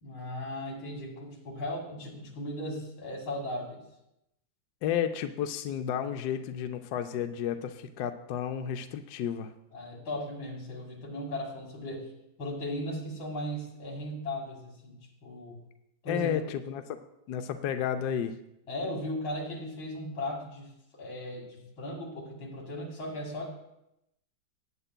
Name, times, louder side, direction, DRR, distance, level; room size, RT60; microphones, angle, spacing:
voice 1, 0.0-3.8 9.7-12.1 12.4-15.6 16.0-16.6 18.7-23.5, left 1 dB, 85° left, -1 dB, 2.8 m, -37 dB
voice 2, 4.8-9.5 16.1-17.0 17.3-18.3, left 9 dB, 70° left, 7 dB, 1.0 m, -32 dB
18.0 x 8.8 x 2.2 m, 0.83 s
omnidirectional pair, 2.1 m